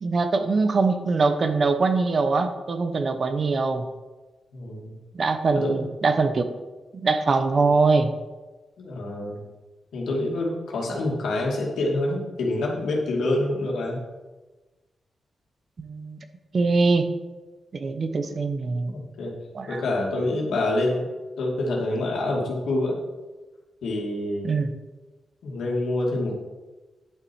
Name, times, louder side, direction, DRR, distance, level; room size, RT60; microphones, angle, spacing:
voice 1, 0.0-3.9 5.1-6.5 6.9-8.1 15.8-16.2 16.5-17.1 17.7-18.9 19.5-19.8 24.4-24.7, right 4 dB, 40° right, 8 dB, 0.9 m, -23 dB
voice 2, 4.5-4.9 5.5-5.9 8.8-9.4 9.9-14.0 18.2-18.4 18.9-19.3 19.7-21.1 21.4-23.0 23.8-24.5 25.4-26.4, left 2 dB, 85° left, -2 dB, 2.5 m, -26 dB
10.5 x 6.8 x 4.6 m, 1.2 s
wide cardioid pair, 120°, 0 cm